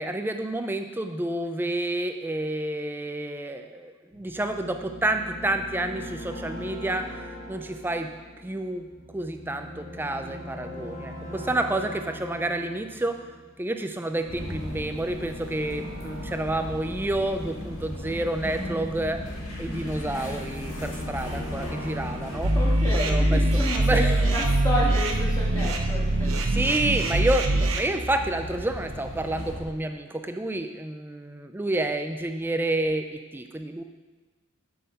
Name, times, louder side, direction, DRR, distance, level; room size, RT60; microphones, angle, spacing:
voice 1, 0.0-7.1 7.5-8.1 8.4-8.9 9.1-13.2 13.6-19.2 19.6-22.5 22.9-23.4 23.8-24.4 26.5-33.8, right 1 dB, 10° right, 6 dB, 0.4 m, -29 dB
sound 1, 4.1-18.4 18.9-22.5, left 1 dB, 40° left, 2.6 m, -40 dB
sound 2, 14.3-29.6, left 1 dB, 70° left, 1.9 m, -37 dB
voice 2, 19.7-20.2 21.2-21.7 22.3-26.3, left 1 dB, 15° left, -6 dB, 1.9 m, -31 dB
sound 3, 22.4-27.8, right 1 dB, 65° right, 0.8 m, -23 dB
7.7 x 7.4 x 4.1 m, 1.3 s
head